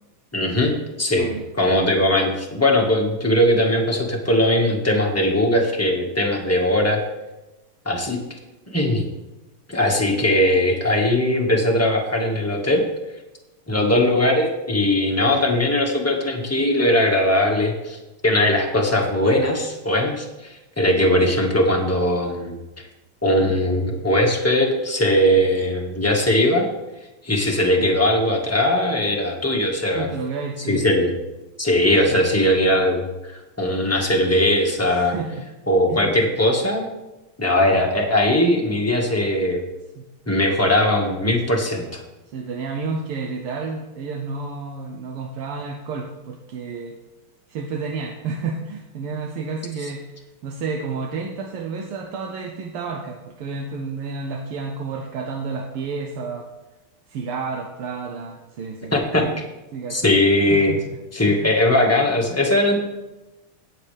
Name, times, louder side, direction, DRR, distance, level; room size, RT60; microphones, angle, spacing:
voice 1, 0.3-0.7 1.0-1.3 1.6-7.0 7.8-8.2 8.7-9.0 9.7-12.8 13.7-18.0 18.2-22.6 23.2-26.7 27.2-30.1 30.7-31.1 31.6-35.1 35.7-36.8 37.4-39.6 40.3-42.0 58.9-59.2 59.9-60.8 61.1-62.8, left 1 dB, 10° left, 0 dB, 1.3 m, -19 dB
voice 2, 1.2-1.5 29.9-30.9 32.1-32.2 34.8-35.5 35.9-36.1 40.0-40.1 42.3-47.0 47.5-56.5 57.1-58.9 59.2-59.4 59.7-60.1 60.5-61.0 61.3-61.5, right 4 dB, 80° right, 3 dB, 1.8 m, -31 dB
17.5 x 7.6 x 3.4 m, 1.1 s
omnidirectional pair, 2.4 m